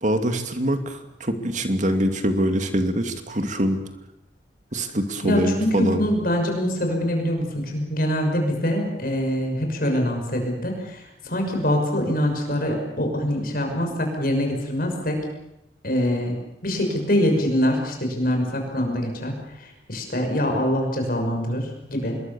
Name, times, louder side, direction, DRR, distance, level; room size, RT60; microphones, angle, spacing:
voice 1, 0.0-3.8 4.7-6.1, right 1 dB, 45° right, 7 dB, 2.5 m, -24 dB
voice 2, 5.2-15.2 15.8-16.3 16.6-22.2, equal, 55° left, 3 dB, 6.2 m, -24 dB
26.0 x 21.5 x 7.1 m, 0.86 s
head